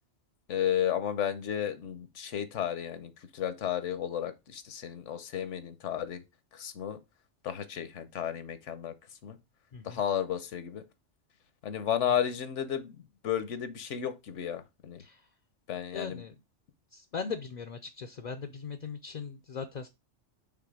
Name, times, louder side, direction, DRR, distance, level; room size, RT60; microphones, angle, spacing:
voice 1, 0.5-3.1 3.4-6.2 6.6-7.0 7.4-8.9 9.2-9.3 9.9-10.8 11.6-12.9 13.2-15.0 15.7-16.2, left 9 dB, 80° left, 1.1 m, -32 dB
voice 2, 15.9-16.3 16.9-19.9, left 5 dB, 55° left, 0.5 m, -39 dB
5.9 x 3.5 x 4.8 m
omnidirectional pair, 1.3 m